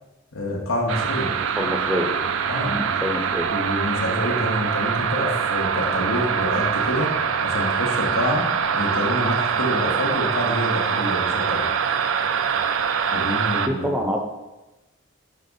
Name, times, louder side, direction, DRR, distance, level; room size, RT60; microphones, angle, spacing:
voice 1, 0.3-1.3 2.5-2.7 3.1-7.1 7.4-8.4 8.7-11.6 13.1-14.0, left 1 dB, 90° left, 0 dB, 1.2 m, -27 dB
sound 1, 0.9-13.7, right 6 dB, 75° right, 0.4 m, -24 dB
voice 2, 1.6-2.1 2.6-3.5 13.7-14.2, equal, 5° right, 2 dB, 0.6 m, -26 dB
5.7 x 3.5 x 5.3 m, 1.0 s
head